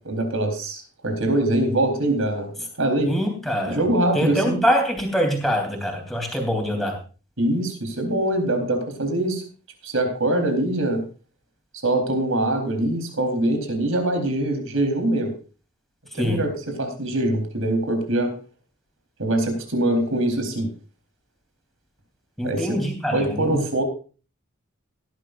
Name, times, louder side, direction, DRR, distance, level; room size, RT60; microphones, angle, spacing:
voice 1, 0.0-3.1 3.7-4.6 7.4-9.4 9.8-11.0 11.8-15.3 16.1-18.3 19.2-20.7 22.4-22.8 23.1-23.8, right 1 dB, 75° right, 5 dB, 4.0 m, -23 dB
voice 2, 3.0-3.8 4.1-7.0 16.1-16.5 22.4-23.6, equal, ahead, 1 dB, 3.5 m, -24 dB
18.0 x 11.5 x 2.6 m, 0.36 s
head